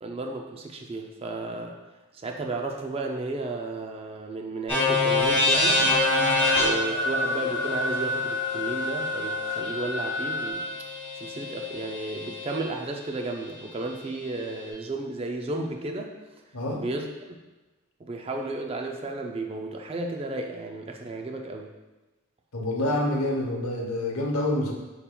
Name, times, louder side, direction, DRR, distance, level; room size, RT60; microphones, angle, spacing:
voice 1, 0.0-1.8 2.2-5.9 6.5-10.7 11.2-16.1 16.7-17.4 18.0-21.7, right 2 dB, 25° right, 3 dB, 0.3 m, -33 dB
sound 1, 4.7-12.6, left 3 dB, 5° left, 1.5 m, -27 dB
sound 2, 5.5-10.5, equal, 80° right, 0.8 m, -30 dB
voice 2, 22.5-24.7, left 1 dB, 85° left, 0 dB, 0.9 m, -27 dB
5.3 x 4.3 x 2.2 m, 1.1 s
head